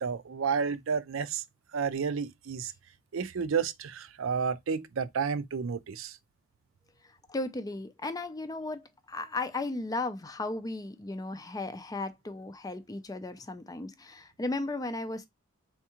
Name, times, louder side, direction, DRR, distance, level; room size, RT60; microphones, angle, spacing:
voice 1, 0.0-1.4 1.7-2.7 3.1-6.2, right 6 dB, 65° right, 0.5 m, -31 dB
voice 2, 7.3-15.3, left 2 dB, 15° left, 0.4 m, -35 dB
4.5 x 3.6 x 2.8 m
head